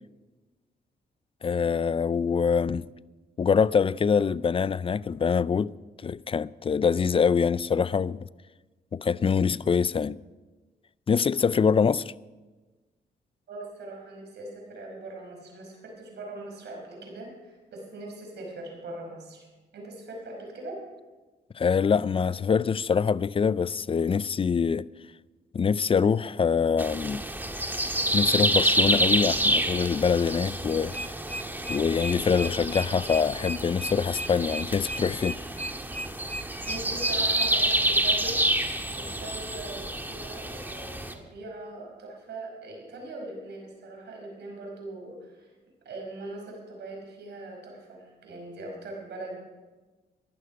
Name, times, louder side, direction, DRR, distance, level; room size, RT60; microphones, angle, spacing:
voice 1, 1.4-2.8 3.4-5.7 6.0-8.3 8.9-10.2 11.1-12.1 21.5-24.9 25.5-27.2 28.1-31.1 31.7-35.4, left 6 dB, 30° left, 0.4 m, -24 dB
voice 2, 13.5-19.5 19.7-20.8 36.7-38.4 38.9-45.5 45.9-49.4, right 2 dB, 75° right, 5.3 m, -41 dB
sound 1, 26.8-41.1, right 1 dB, 10° right, 1.6 m, -28 dB
sound 2, 30.7-37.5, equal, 10° left, 0.8 m, -36 dB
15.0 x 11.5 x 5.2 m
cardioid pair, 60°, 18 cm